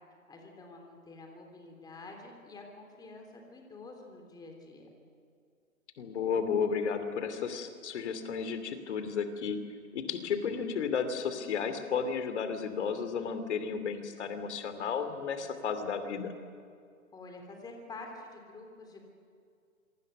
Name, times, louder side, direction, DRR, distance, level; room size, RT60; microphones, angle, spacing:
voice 1, 0.3-4.9 17.1-19.0, left 3 dB, 10° left, 3 dB, 3.4 m, -48 dB
voice 2, 6.0-9.6 9.9-16.3, left 6 dB, 50° left, 9 dB, 2.9 m, -33 dB
27.0 x 23.5 x 6.7 m, 2.3 s
hypercardioid pair, 135°, 42 cm